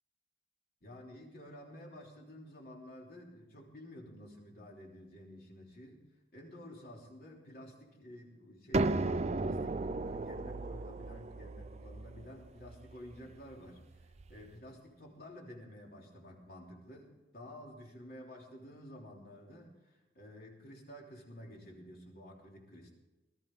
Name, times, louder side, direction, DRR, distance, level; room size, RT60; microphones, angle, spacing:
voice 1, 0.8-6.0 6.3-22.9, equal, 55° left, -1 dB, 3.2 m, -51 dB
sound 1, 8.7-14.3, right 2 dB, 40° right, 0.5 m, -36 dB
19.5 x 13.5 x 3.8 m, 1.1 s
head